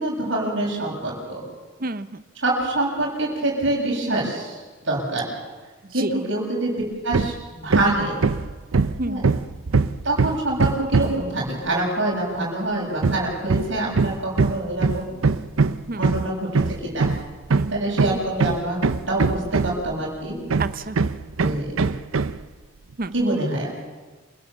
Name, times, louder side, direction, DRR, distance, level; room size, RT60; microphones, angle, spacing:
voice 1, 0.0-1.4 2.4-5.3 5.9-7.3 7.6-8.2 9.0-9.2 10.0-15.2 15.9-17.1 17.7-18.8 19.1-20.4 21.4-21.7 23.1-23.8, right 2 dB, 65° right, -3 dB, 7.4 m, -25 dB
voice 2, 1.8-2.2 6.0-6.1 9.0-9.2 15.9-16.4 17.5-17.8 20.6-21.0 23.0-23.1, right 2 dB, 45° right, 12 dB, 0.8 m, -30 dB
Hammer, 7.1-7.4 7.7-11.3 13.0-19.9 20.5-22.4, right 4 dB, 85° right, 0.7 m, -22 dB
27.5 x 17.0 x 7.2 m, 1.4 s
head